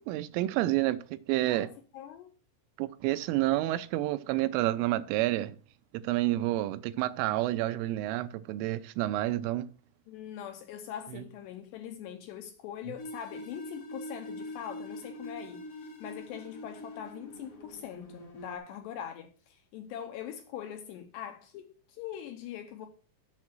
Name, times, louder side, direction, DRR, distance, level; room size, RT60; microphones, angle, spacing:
voice 1, 0.1-1.7 2.8-5.6 5.9-9.7 11.1-11.2, right 16 dB, 85° right, 3.2 m, -29 dB
voice 2, 1.5-2.3 10.1-22.9, left 10 dB, 75° left, 2.6 m, -42 dB
sound 1, 13.0-18.6, left 1 dB, 50° left, 1.7 m, -44 dB
7.6 x 6.1 x 7.4 m
omnidirectional pair, 5.6 m